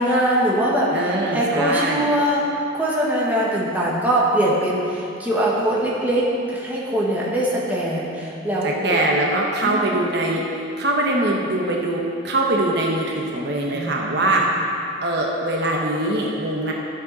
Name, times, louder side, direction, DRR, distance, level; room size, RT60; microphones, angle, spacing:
voice 1, 0.0-2.4 2.7-9.0 9.6-9.9 13.7-14.4, right 1 dB, 10° right, -6 dB, 1.4 m, -22 dB
voice 2, 0.9-2.1 8.6-14.5 15.0-16.7, right 1 dB, 55° right, -1 dB, 1.0 m, -22 dB
13.0 x 7.5 x 4.1 m, 2.6 s
head